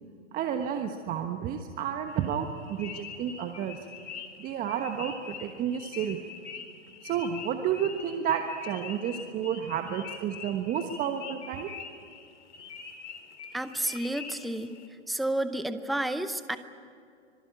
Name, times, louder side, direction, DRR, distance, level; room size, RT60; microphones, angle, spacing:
voice 1, 0.3-3.8 4.4-6.2 7.0-11.7, right 8 dB, 25° right, 5 dB, 1.3 m, -31 dB
sound 1, 2.1-14.9, left 6 dB, 65° left, 4.2 m, -44 dB
voice 2, 13.5-14.7 15.1-16.6, right 1 dB, ahead, 10 dB, 0.7 m, -30 dB
25.5 x 23.0 x 8.9 m, 2.4 s
hypercardioid pair, 125°, 37 cm